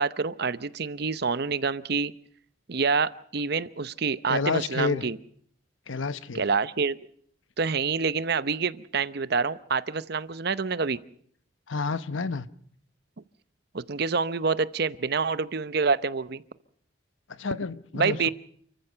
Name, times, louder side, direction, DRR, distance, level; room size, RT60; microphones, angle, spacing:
voice 1, 0.0-2.1 2.7-5.2 6.3-7.0 7.6-11.0 13.7-16.4 17.9-18.3, right 5 dB, 55° right, 15 dB, 0.8 m, -27 dB
voice 2, 4.3-5.0 5.9-6.4 11.7-12.5 17.4-18.3, left 4 dB, 85° left, 14 dB, 1.0 m, -29 dB
29.0 x 14.5 x 6.7 m, 0.63 s
head